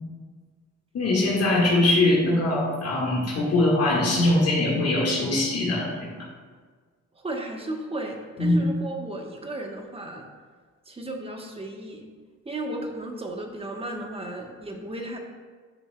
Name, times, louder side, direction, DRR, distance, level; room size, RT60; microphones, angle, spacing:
voice 1, 0.9-6.1 8.4-8.6, left 2 dB, 55° left, -4 dB, 1.7 m, -22 dB
voice 2, 7.1-10.3 10.9-12.1 12.4-15.2, right 1 dB, 20° right, 2 dB, 1.1 m, -34 dB
10.5 x 6.1 x 2.3 m, 1.5 s
cardioid pair, 90°, 30 cm